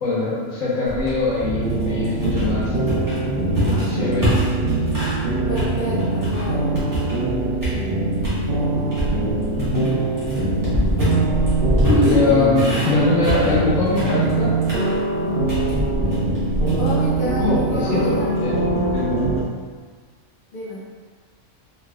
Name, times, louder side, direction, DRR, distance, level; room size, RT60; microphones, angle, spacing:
voice 1, 0.0-2.7 3.6-4.4 9.6-9.9 11.9-14.5 17.4-18.6 18.9-19.1, left 2 dB, 75° left, -9 dB, 1.6 m, -22 dB
sound 1, 0.9-5.2 5.5-7.3 7.6-8.4 8.9-19.4, equal, 15° right, 1.2 m, -26 dB
sound 2, 1.4-19.4, right 2 dB, 55° right, 0.8 m, -23 dB
voice 2, 5.5-6.7 7.7-7.9 12.0-12.6 16.7-18.3 20.5-20.8, left 1 dB, 50° left, -6 dB, 0.6 m, -30 dB
4.4 x 3.2 x 2.3 m, 1.5 s
omnidirectional pair, 1.4 m